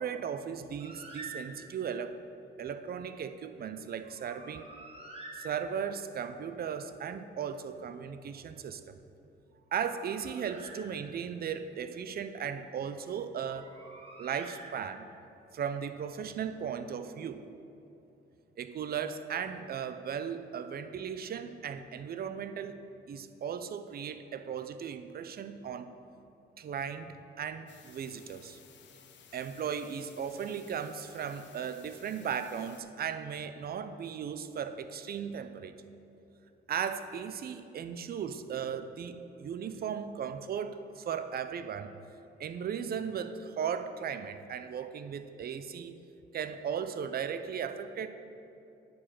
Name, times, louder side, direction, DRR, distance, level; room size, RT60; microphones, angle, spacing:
voice 1, 0.0-2.2 2.6-4.7 5.3-8.8 9.7-13.7 14.2-15.1 15.5-17.4 18.6-22.8 23.1-25.9 26.6-28.6 29.3-35.8 36.7-41.9 42.4-45.9 46.3-48.1, right 7 dB, 50° right, 10 dB, 0.6 m, -37 dB
Bird, 0.8-2.0 4.0-6.1 9.5-11.4 13.4-15.3, right 2 dB, 30° right, 1.6 m, -49 dB
sound 1, 27.7-32.8, left 8 dB, 65° left, 0.8 m, -57 dB
9.5 x 4.8 x 7.4 m, 2.8 s
cardioid pair, 90°, 20 cm